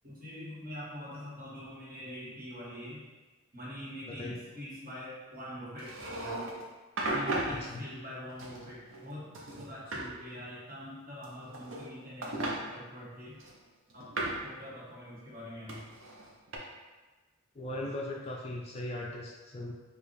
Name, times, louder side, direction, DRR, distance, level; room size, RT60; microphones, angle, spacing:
voice 1, 0.0-3.0 3.5-5.9 7.0-13.4 13.9-15.8, equal, 40° right, -7 dB, 1.3 m, -44 dB
sound 1, 5.8-6.6 7.0-7.6 8.4-9.1 9.3-10.1 11.2-11.9 12.2-12.6 13.4-14.5 15.7-16.6, right 2 dB, 60° right, 0.6 m, -35 dB
voice 2, 7.5-7.8 8.1-8.2 17.5-19.7, left 1 dB, 30° left, -2 dB, 0.3 m, -38 dB
4.8 x 2.3 x 3.2 m, 1.3 s
head